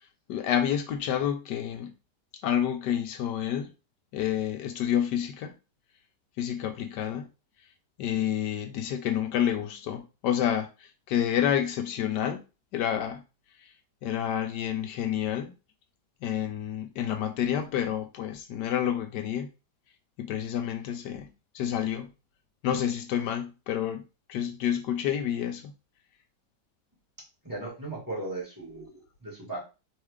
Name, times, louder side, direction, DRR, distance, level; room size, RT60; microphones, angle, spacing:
voice 1, 0.3-1.9 2.4-3.7 4.1-5.5 6.4-7.3 8.0-12.4 12.7-13.2 14.0-15.5 16.2-19.5 20.2-21.3 21.5-22.1 22.6-25.7, left 10 dB, 80° left, 1.2 m, -29 dB
voice 2, 27.4-29.6, right 2 dB, 10° right, 2.0 m, -37 dB
4.5 x 3.2 x 3.5 m
omnidirectional pair, 1.8 m